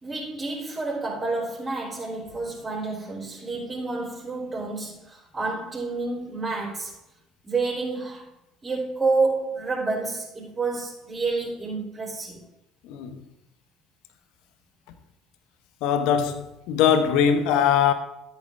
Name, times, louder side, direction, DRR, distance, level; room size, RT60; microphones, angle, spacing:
voice 1, 0.0-7.0 7.4-8.3 8.6-12.4, right 3 dB, 20° right, 3.4 m, -29 dB
voice 2, 12.8-13.3 15.8-17.9, left 8 dB, 60° left, 0.8 m, -21 dB
13.5 x 8.7 x 2.6 m
figure-of-eight pair, 60°, 0 cm